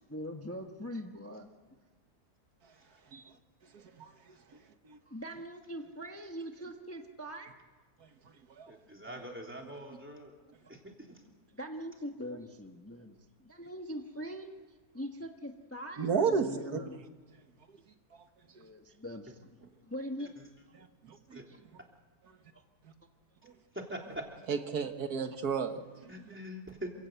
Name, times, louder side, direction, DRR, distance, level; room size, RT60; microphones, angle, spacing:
voice 1, 0.1-1.5 5.1-7.5 11.5-14.5 14.9-17.0 18.5-19.5 19.8-20.3 21.5-21.6 22.5-22.6, equal, 10° left, 4 dB, 1.2 m, -42 dB
voice 2, 3.7-4.1 4.8-5.0 8.6-8.7 16.0-16.5 20.8-21.4 23.4-23.5 24.5-26.1, right 6 dB, 80° right, 7 dB, 1.9 m, -33 dB
voice 3, 8.7-10.3 10.7-11.2 20.2-20.3 21.3-21.5 23.7-24.3 26.1-26.9, equal, 5° right, 1 dB, 3.3 m, -43 dB
28.0 x 17.0 x 8.1 m, 1.4 s
omnidirectional pair, 1.6 m